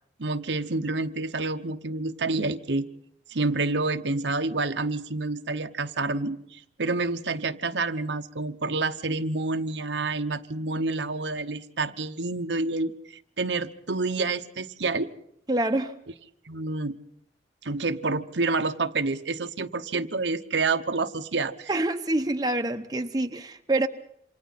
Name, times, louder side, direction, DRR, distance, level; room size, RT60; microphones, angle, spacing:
voice 1, 0.2-2.9 3.3-12.9 13.4-15.1 16.5-17.0 17.6-21.7, right 3 dB, 80° right, 8 dB, 1.0 m, -28 dB
voice 2, 15.5-15.9 21.7-23.9, right 2 dB, 20° right, 6 dB, 0.9 m, -26 dB
28.5 x 26.5 x 4.2 m, 0.71 s
head